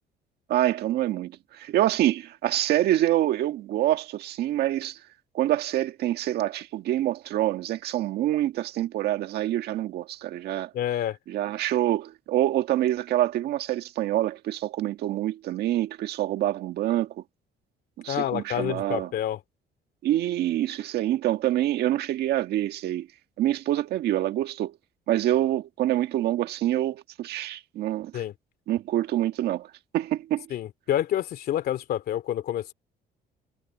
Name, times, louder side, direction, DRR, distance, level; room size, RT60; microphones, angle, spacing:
voice 1, 0.5-5.0 5.3-10.7 11.3-17.2 18.0-19.1 20.0-23.1 23.4-24.8 25.1-28.1 28.7-30.5, right 13 dB, 70° right, 1.7 m, -26 dB
voice 2, 10.7-11.2 18.1-19.4 28.1-28.3 30.5-32.7, left 11 dB, 65° left, 2.7 m, -28 dB
cardioid pair, 110°, 17 cm